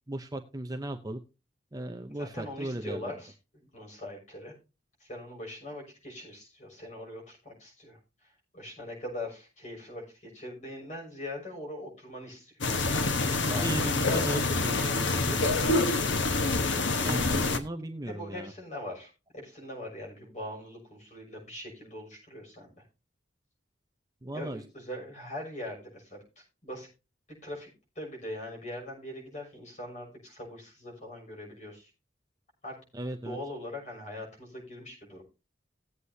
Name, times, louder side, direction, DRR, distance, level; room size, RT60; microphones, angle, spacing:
voice 1, 0.1-1.2 1.7-3.1 13.4-15.4 17.0-18.5 24.2-24.6 32.9-33.4, right 1 dB, 20° right, 5 dB, 0.7 m, -36 dB
voice 2, 2.1-4.5 5.0-12.6 13.3-13.9 15.6-16.0 18.0-22.8 24.3-26.9 27.3-27.7 27.9-31.9 32.6-32.8 33.2-35.2, left 1 dB, 40° left, -1 dB, 6.4 m, -42 dB
sound 1, 12.6-17.6, left 3 dB, 90° left, 1.3 m, -26 dB
18.5 x 8.2 x 2.8 m, 0.30 s
head